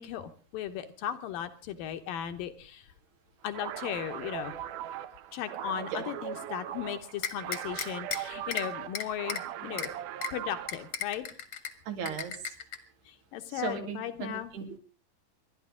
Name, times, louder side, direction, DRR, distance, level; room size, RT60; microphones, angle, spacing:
voice 1, 0.0-2.9 3.4-4.5 5.3-9.9 10.3-11.3 13.1-14.5, left 10 dB, 70° left, 8 dB, 2.4 m, -37 dB
sound 1, 3.5-10.9, right 11 dB, 75° right, 1.9 m, -39 dB
sound 2, 7.2-8.2 8.5-8.6 8.9-9.4 9.8-9.9 10.2-10.3 10.7-11.7 12.1-12.8, left 8 dB, 50° left, 1.6 m, -34 dB
voice 2, 11.9-12.3 13.5-14.8, right 6 dB, 90° right, 5 dB, 4.3 m, -37 dB
27.5 x 12.0 x 3.7 m, 0.37 s
omnidirectional pair, 4.6 m